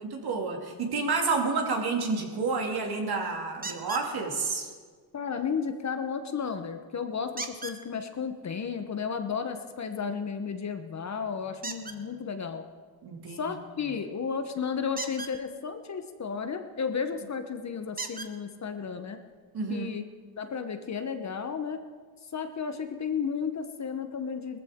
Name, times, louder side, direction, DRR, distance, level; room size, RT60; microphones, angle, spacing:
voice 1, 0.0-4.7 13.0-13.5 19.5-19.9, right 4 dB, 55° right, 2 dB, 2.6 m, -30 dB
sound 1, 3.6-4.1 7.4-7.8 11.6-12.0 14.9-15.3 17.0-17.1 18.0-18.3 19.3-19.4 19.9-20.0, right 3 dB, 20° right, 1.2 m, -37 dB
voice 2, 5.1-12.6 13.3-19.2 19.7-20.0 20.4-21.8 22.3-24.6, left 6 dB, 35° left, 7 dB, 1.1 m, -33 dB
18.5 x 14.5 x 3.7 m, 1.5 s
cardioid pair, 100°, 46 cm